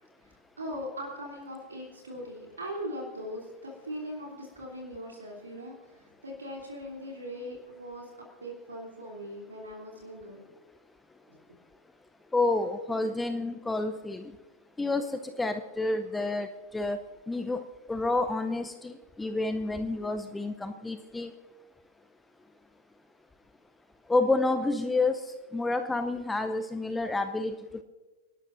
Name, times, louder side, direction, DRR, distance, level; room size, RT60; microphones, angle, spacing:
voice 1, 0.2-10.4 11.3-11.4, equal, 75° right, -1 dB, 3.0 m, -40 dB
voice 2, 12.3-14.3 14.8-16.5 16.7-17.6 17.9-18.9 19.2-21.3 24.1-25.2 25.5-27.8, left 2 dB, 10° left, 10 dB, 0.7 m, -29 dB
27.0 x 12.0 x 2.6 m, 1.3 s
figure-of-eight pair, 90°, 0 cm